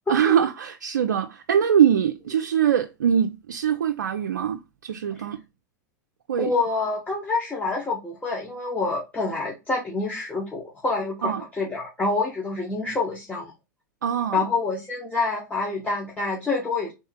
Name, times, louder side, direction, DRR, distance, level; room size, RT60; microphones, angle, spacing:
voice 1, 0.1-5.4 6.3-6.5 11.2-11.4 14.0-14.5, right 9 dB, 90° right, 0.4 m, -23 dB
voice 2, 6.4-13.5 14.3-16.9, left 3 dB, 15° left, 1.2 m, -27 dB
3.6 x 2.7 x 4.2 m
hypercardioid pair, 100°, 10 cm